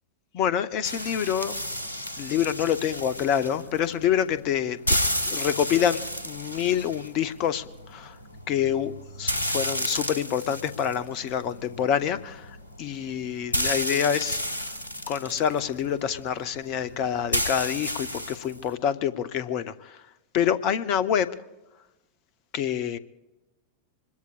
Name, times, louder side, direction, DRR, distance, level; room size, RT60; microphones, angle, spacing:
voice 1, 0.3-1.5 2.2-5.0 5.2-6.0 6.2-8.2 8.5-8.9 9.2-12.5 12.8-14.4 15.1-20.0 20.3-21.3 22.5-23.0, left 9 dB, 40° left, 15 dB, 0.9 m, -26 dB
sound 1, 0.8-18.7, equal, 80° left, 1.3 m, -32 dB
25.5 x 21.5 x 2.5 m, 1.0 s
figure-of-eight pair, 90°, 0 cm